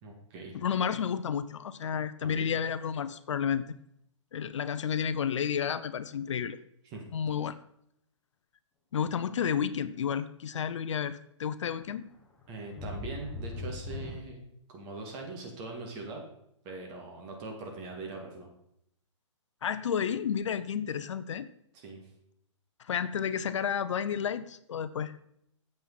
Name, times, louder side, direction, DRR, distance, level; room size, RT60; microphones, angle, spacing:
voice 1, 0.0-0.5 2.2-2.5 6.9-7.0 12.5-14.4 14.7-16.2 16.6-18.5 21.7-22.1, right 3 dB, 25° right, 1 dB, 1.9 m, -41 dB
voice 2, 0.5-3.8 4.3-6.6 7.1-7.6 8.9-12.0 19.6-21.5 22.8-25.2, left 7 dB, 70° left, 14 dB, 0.6 m, -31 dB
sound 1, 11.8-11.9 12.3-14.2, left 2 dB, 10° left, 1.4 m, -39 dB
8.7 x 7.4 x 4.1 m, 0.74 s
hypercardioid pair, 160°, 16 cm